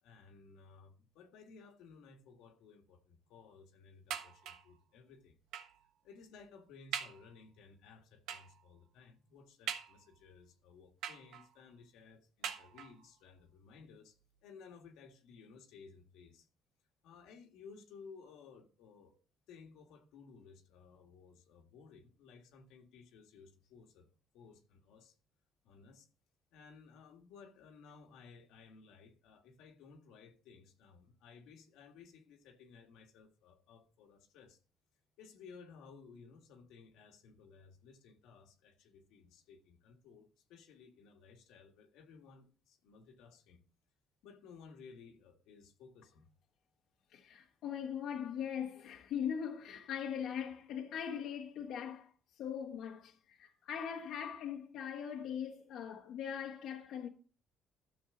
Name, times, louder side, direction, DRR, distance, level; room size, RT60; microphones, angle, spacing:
voice 1, 0.0-5.4 6.0-16.5 17.0-19.2 19.5-25.2 25.6-26.1 26.5-34.6 35.2-43.6 44.2-46.3, left 5 dB, 90° left, 1.7 m, -58 dB
sound 1, 4.1-4.8 5.5-5.8 6.4-6.5 6.9-7.3 8.3-8.6 9.7-10.3 11.0-11.6 12.4-13.1 13.9-14.0 14.3-14.4, right 9 dB, 80° right, 1.2 m, -43 dB
voice 2, 47.1-57.1, left 8 dB, 65° left, 1.1 m, -41 dB
13.0 x 7.2 x 3.8 m
cardioid pair, 170°, 0 cm